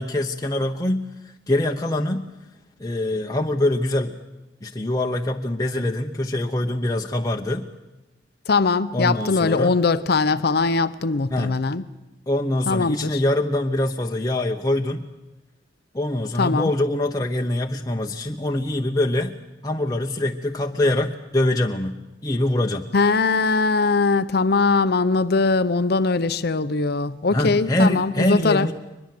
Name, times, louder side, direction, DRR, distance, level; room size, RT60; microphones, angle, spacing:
voice 1, 0.0-2.3 2.8-4.2 4.6-7.6 8.9-9.8 11.3-11.5 12.3-15.0 15.9-19.3 19.6-22.0 22.2-22.8 27.3-28.7, left 1 dB, 20° left, 0.9 m, -24 dB
voice 2, 8.5-11.8 12.7-13.2 16.4-16.7 22.9-28.7, left 4 dB, 60° left, 0.7 m, -21 dB
23.0 x 21.0 x 7.7 m
head